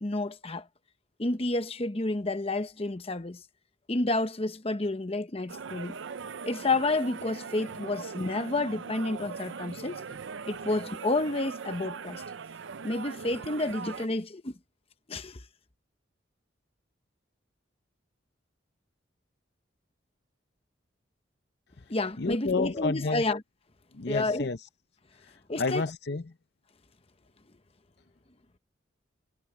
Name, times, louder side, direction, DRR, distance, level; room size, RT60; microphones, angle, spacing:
voice 1, 0.0-0.7 1.2-3.4 3.9-6.0 6.5-10.2 10.5-12.2 12.8-14.5 15.1-15.4 21.9-23.4 24.1-24.5 25.5-25.8, left 2 dB, 30° left, 0.9 m, -30 dB
sound 1, 5.5-14.1, right 5 dB, 75° right, 0.6 m, -40 dB
voice 2, 22.2-23.2 23.9-24.6 25.2-26.3, left 3 dB, 60° left, 0.7 m, -31 dB
head